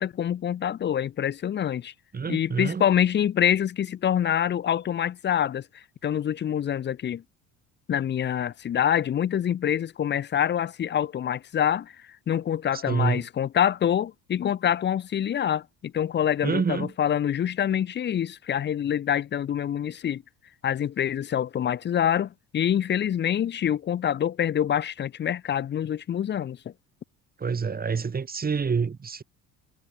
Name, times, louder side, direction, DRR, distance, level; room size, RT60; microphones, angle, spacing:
voice 1, 0.0-1.9 2.3-7.2 7.9-11.9 12.3-20.2 20.6-26.6, left 9 dB, 30° left, 0.5 m, -26 dB
voice 2, 2.1-2.8 12.7-13.2 16.4-16.9 27.4-29.2, right 5 dB, 25° right, 3.0 m, -27 dB
cardioid pair, 120°, 35 cm